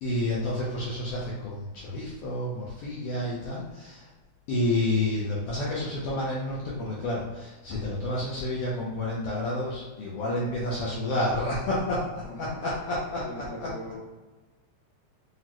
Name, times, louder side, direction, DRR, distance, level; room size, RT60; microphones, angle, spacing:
voice 1, 0.0-4.1 4.5-13.7, left 1 dB, 80° left, -6 dB, 1.4 m, -30 dB
voice 2, 10.8-11.2 12.2-12.6 13.1-14.0, equal, 50° left, -10 dB, 0.9 m, -42 dB
6.1 x 2.0 x 2.9 m, 1.2 s
omnidirectional pair, 3.4 m